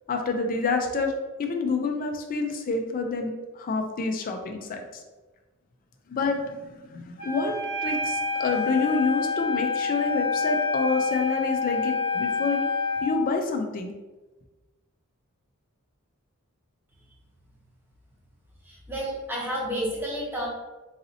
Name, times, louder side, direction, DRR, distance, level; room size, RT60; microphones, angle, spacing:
voice 1, 0.1-1.1 1.4-3.3 3.6-4.8 6.1-7.5 7.8-12.6 13.0-13.9, left 3 dB, 40° left, 3 dB, 0.4 m, -27 dB
Wind instrument woodwind instrument, 7.2-13.1, left 4 dB, 20° left, 0.8 m, -28 dB
voice 2, 18.6-20.5, equal, 10° right, -4 dB, 0.8 m, -30 dB
4.0 x 2.7 x 2.7 m, 1.2 s
head